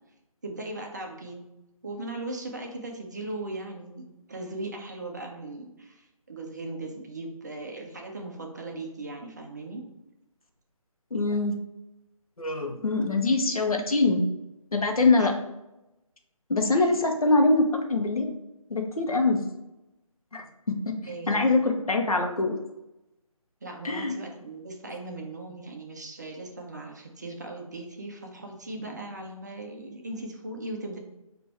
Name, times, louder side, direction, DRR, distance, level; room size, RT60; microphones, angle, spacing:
voice 1, 0.4-1.4 1.8-4.0 4.3-9.8 15.2-15.3 16.7-17.0 21.1-21.6 23.6-31.0, right 2 dB, 30° right, 2 dB, 0.5 m, -38 dB
voice 2, 11.1-11.5 12.4-14.2 14.7-15.3 16.5-18.3 18.7-19.4 20.3-20.9 21.3-22.5 23.8-24.1, left 3 dB, 75° left, 3 dB, 0.9 m, -24 dB
4.8 x 2.5 x 3.3 m, 0.93 s
figure-of-eight pair, 155°, 19 cm